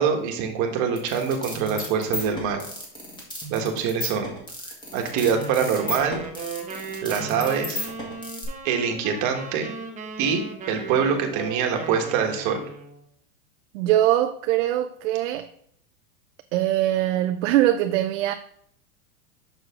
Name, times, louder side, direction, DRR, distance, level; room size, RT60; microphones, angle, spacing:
voice 1, 0.0-2.6 3.5-4.3 4.9-6.2 7.0-7.8 8.6-9.7 10.2-12.6, right 6 dB, 40° right, 1.5 m, -24 dB
sound 1, 1.0-8.5, left 1 dB, 10° left, 2.1 m, -34 dB
sound 2, 5.1-13.0, right 4 dB, 15° right, 0.9 m, -37 dB
voice 2, 13.7-15.5 16.5-18.3, right 13 dB, 60° right, 0.5 m, -22 dB
6.5 x 6.3 x 3.6 m
supercardioid pair, 135°, 44 cm